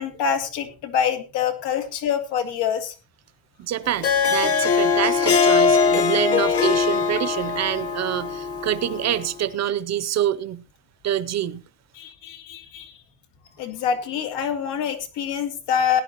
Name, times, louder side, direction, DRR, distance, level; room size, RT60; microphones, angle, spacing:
voice 1, 0.0-2.9 11.9-13.0 13.6-16.0, left 7 dB, 85° left, 2.8 m, -25 dB
voice 2, 3.6-10.6 11.0-11.6, right 11 dB, 40° right, 0.7 m, -26 dB
Harp, 3.8-9.3, left 5 dB, 35° left, 1.2 m, -21 dB
19.0 x 10.5 x 2.9 m
cardioid pair, 160°, 41 cm